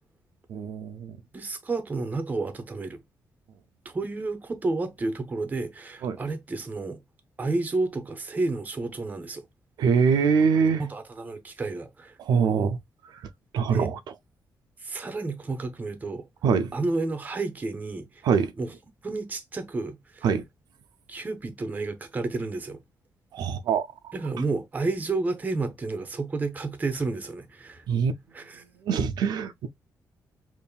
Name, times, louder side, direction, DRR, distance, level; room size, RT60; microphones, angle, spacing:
voice 1, 0.5-1.2 6.0-6.2 9.8-10.8 12.2-12.8 13.5-14.0 16.4-16.7 18.2-18.5 20.2-20.4 23.3-23.9 27.9-28.1 28.9-29.7, right 6 dB, 75° right, 0.4 m, -23 dB
voice 2, 1.3-3.0 3.8-7.0 7.4-9.4 10.8-12.1 13.6-13.9 14.8-16.3 16.7-18.1 18.6-18.7 19.0-20.3 21.1-22.8 24.1-27.8 28.3-28.6, right 3 dB, 25° right, 0.7 m, -31 dB
5.2 x 2.6 x 2.2 m
cardioid pair, 145°, 7 cm